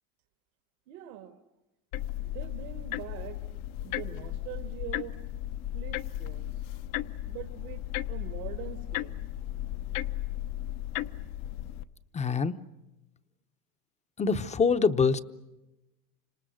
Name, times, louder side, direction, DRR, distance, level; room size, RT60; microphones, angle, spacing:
voice 1, 0.9-1.3 2.2-3.4 3.8-5.2 5.7-6.5 7.3-9.3, right 13 dB, 70° right, 6 dB, 2.2 m, -43 dB
sound 1, 1.9-11.8, left 13 dB, 70° left, 1.1 m, -35 dB
voice 2, 12.1-12.5 14.2-15.2, left 5 dB, 15° left, 11 dB, 0.8 m, -24 dB
29.5 x 26.5 x 6.3 m, 1.0 s
supercardioid pair, 130°, 43 cm